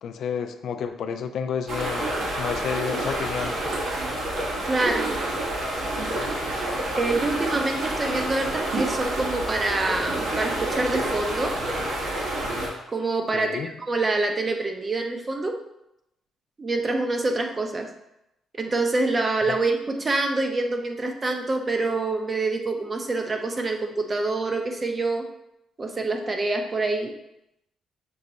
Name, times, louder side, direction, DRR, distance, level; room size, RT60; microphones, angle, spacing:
voice 1, 0.0-3.6 13.3-13.7 19.5-19.6, left 7 dB, 70° left, 8 dB, 0.3 m, -30 dB
sound 1, 1.7-12.7, right 1 dB, 75° right, 1.3 m, -28 dB
voice 2, 4.6-5.2 7.0-11.6 12.9-15.6 16.6-17.9 18.6-25.3 25.8-27.1, right 2 dB, 30° right, 4 dB, 0.6 m, -26 dB
6.1 x 2.2 x 3.9 m, 0.85 s
cardioid pair, 90°, 0 cm